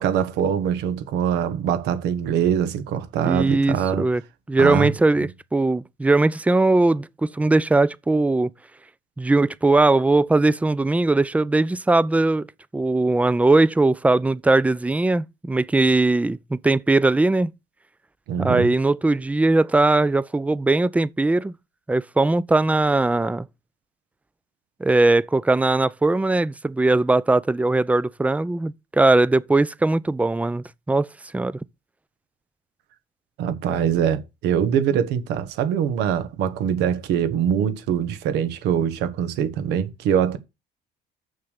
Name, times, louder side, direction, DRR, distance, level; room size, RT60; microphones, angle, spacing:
voice 1, 0.0-4.0 4.6-4.9 18.3-18.7 33.4-40.4, right 8 dB, 85° right, 1.4 m, -23 dB
voice 2, 3.2-4.2 4.5-8.5 9.2-12.5 12.7-17.5 18.4-21.5 21.9-23.5 24.8-31.1 31.3-31.5, right 2 dB, 10° right, 0.4 m, -20 dB
6.9 x 6.8 x 6.6 m
cardioid pair, 110°, 17 cm